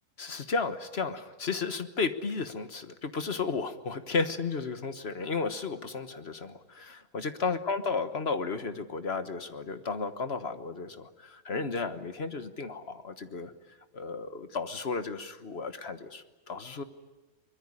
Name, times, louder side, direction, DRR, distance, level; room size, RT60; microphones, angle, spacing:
voice 1, 0.2-13.5 13.9-16.8, left 4 dB, 45° left, 10 dB, 1.5 m, -33 dB
24.0 x 21.5 x 9.9 m, 1.1 s
omnidirectional pair, 1.5 m